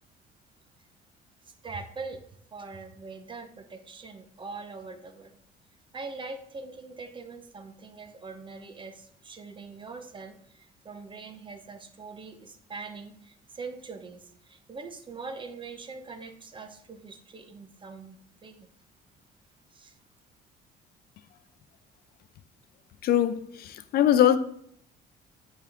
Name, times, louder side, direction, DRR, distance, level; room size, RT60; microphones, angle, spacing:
voice 1, 1.4-2.2 2.5-5.4 5.9-18.7 19.7-20.0, right 4 dB, 30° right, 0.9 m, -42 dB
voice 2, 23.0-24.4, left 10 dB, 65° left, 0.5 m, -22 dB
11.0 x 3.6 x 3.6 m
cardioid pair, 110°, 17 cm